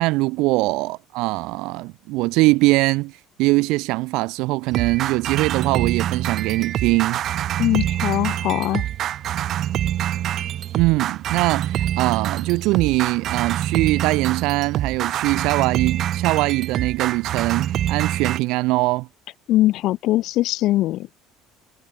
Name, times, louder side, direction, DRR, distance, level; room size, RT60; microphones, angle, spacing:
voice 1, 0.0-7.2 10.7-19.1, right 22 dB, 75° right, 0.9 m, -22 dB
sound 1, 4.7-18.4, right 12 dB, 50° right, 2.8 m, -25 dB
voice 2, 7.6-8.9 19.5-21.1, left 15 dB, 60° left, 0.6 m, -21 dB
cardioid pair, 140°, 0 cm